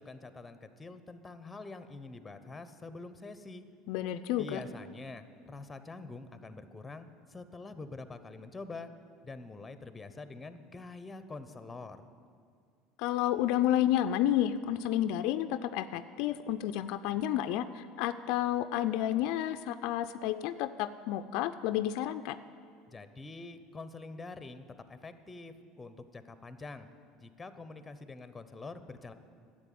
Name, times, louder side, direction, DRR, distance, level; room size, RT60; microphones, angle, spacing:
voice 1, 0.0-3.6 4.4-8.9 9.2-12.1 22.9-26.9 27.2-29.1, left 3 dB, 15° left, 11 dB, 0.9 m, -46 dB
voice 2, 3.9-4.6 13.0-22.4, left 12 dB, 70° left, 10 dB, 0.4 m, -30 dB
11.0 x 7.7 x 9.3 m, 2.3 s
supercardioid pair, 95°, 0 cm